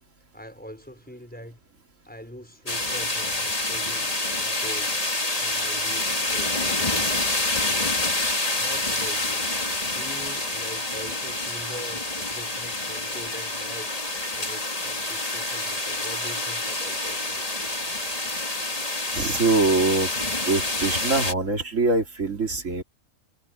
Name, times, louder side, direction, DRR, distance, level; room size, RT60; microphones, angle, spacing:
voice 1, 0.3-1.6 2.0-5.0 5.4-7.4 8.6-17.6, equal, 5° left, 5.7 m, -43 dB
sound 1, 2.7-21.3, left 2 dB, 30° left, 2.4 m, -27 dB
voice 2, 19.1-20.1 20.4-22.8, right 3 dB, 80° right, 3.1 m, -23 dB
omnidirectional pair, 1.3 m